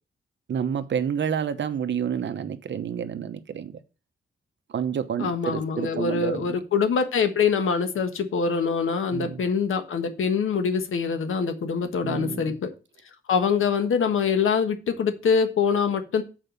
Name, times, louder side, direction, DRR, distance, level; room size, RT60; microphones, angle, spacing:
voice 1, 0.5-3.8 4.7-6.6 9.1-9.5 12.0-12.6, right 8 dB, 65° right, 1.0 m, -29 dB
voice 2, 5.2-12.7 13.3-16.2, left 6 dB, 85° left, 1.4 m, -24 dB
7.6 x 4.9 x 6.7 m
wide cardioid pair, 120°, 20 cm